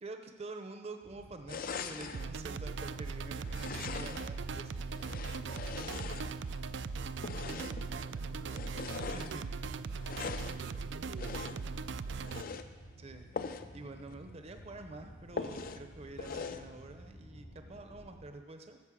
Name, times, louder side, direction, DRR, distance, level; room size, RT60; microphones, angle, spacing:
voice 1, 0.0-5.0 9.1-9.4 13.0-13.2 13.7-18.8, right 2 dB, 35° right, 6 dB, 0.7 m, -47 dB
sound 1, 1.0-18.2, equal, 90° left, 4.6 m, -53 dB
sound 2, 1.5-2.3 3.5-4.4 4.9-6.6 7.2-7.9 8.5-9.4 10.0-10.6 11.2-11.7 12.2-12.7 13.3-13.7 14.1-14.2 14.5-14.6 15.4-15.8 16.2-16.7, left 5 dB, 50° left, 0.5 m, -41 dB
sound 3, 2.1-12.4, right 5 dB, 65° right, 0.4 m, -39 dB
voice 2, 6.6-9.7 10.2-12.7, right 2 dB, 80° right, 5 dB, 0.9 m, -54 dB
13.0 x 6.5 x 7.5 m, 1.4 s
head